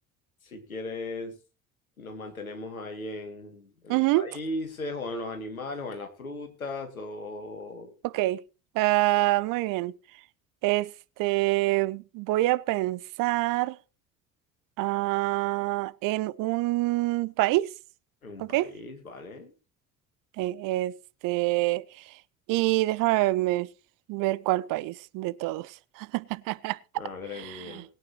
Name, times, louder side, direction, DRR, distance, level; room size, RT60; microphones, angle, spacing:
voice 1, 0.4-1.3 2.0-7.9 9.1-9.3 18.2-19.5 26.9-27.8, left 2 dB, 85° left, 2.5 m, -37 dB
voice 2, 3.9-4.3 8.0-8.4 8.7-10.0 10.6-10.9 11.2-13.8 14.8-17.7 18.4-18.7 20.4-21.0 21.2-21.8 22.5-23.7 24.1-26.8 27.3-27.8, right 18 dB, 50° right, 0.8 m, -26 dB
20.5 x 9.2 x 3.0 m
figure-of-eight pair, 60°, 41 cm